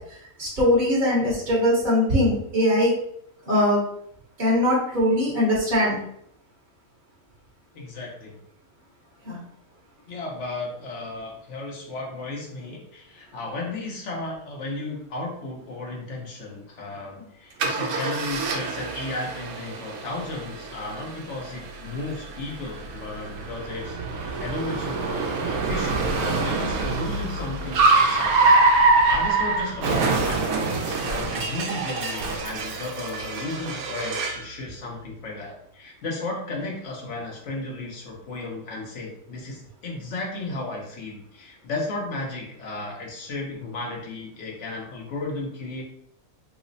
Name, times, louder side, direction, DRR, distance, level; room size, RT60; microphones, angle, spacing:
voice 1, 0.4-2.9 3.5-3.8 4.4-6.0 9.3-9.4, left 1 dB, 40° right, -6 dB, 1.0 m, -21 dB
voice 2, 7.7-8.4 10.1-45.8, left 2 dB, 60° left, -1 dB, 1.1 m, -34 dB
Car, 17.6-34.5, right 3 dB, 80° right, 1.1 m, -25 dB
3.1 x 2.1 x 3.9 m, 0.69 s
omnidirectional pair, 1.5 m